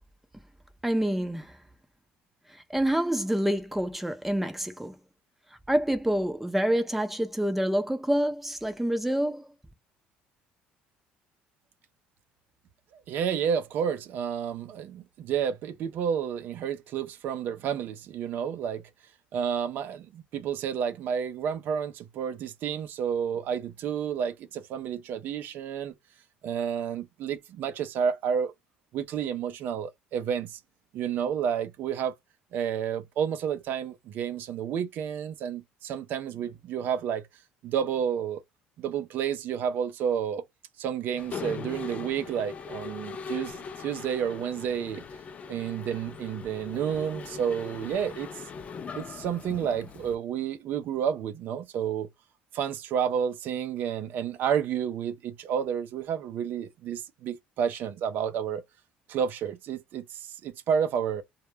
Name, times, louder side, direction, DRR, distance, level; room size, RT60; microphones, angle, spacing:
voice 1, 0.8-1.6 2.5-5.0 5.7-9.5, right 1 dB, 5° right, 0.5 m, -27 dB
voice 2, 12.9-18.9 19.3-25.9 26.4-28.5 28.9-30.6 30.9-32.1 32.5-37.2 37.6-38.4 38.8-40.4 40.8-45.0 45.5-48.3 48.9-52.1 52.5-58.6 59.1-61.2, right 8 dB, 65° right, 0.4 m, -30 dB
Mechanisms, 41.2-50.1, left 5 dB, 40° left, 0.4 m, -40 dB
2.2 x 2.0 x 3.1 m
cardioid pair, 95°, 4 cm